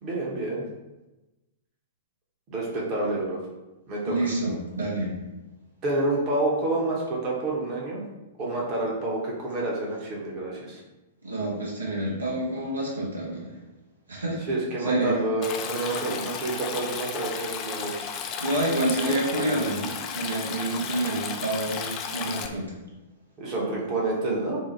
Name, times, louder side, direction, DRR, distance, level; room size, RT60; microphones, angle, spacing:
voice 1, 0.0-0.6 2.5-3.4 3.9-4.2 5.8-8.0 8.4-10.8 14.5-18.0 19.3-19.5 23.4-24.6, right 2 dB, 30° right, -4 dB, 0.9 m, -28 dB
voice 2, 4.1-5.1 11.2-13.5 14.1-14.4 14.8-15.2 18.4-22.8, right 1 dB, 75° right, -4 dB, 0.7 m, -28 dB
Stream, 15.4-22.5, left 6 dB, 30° left, 0.3 m, -34 dB
3.6 x 2.1 x 2.8 m, 1.0 s
figure-of-eight pair, 105°, 0 cm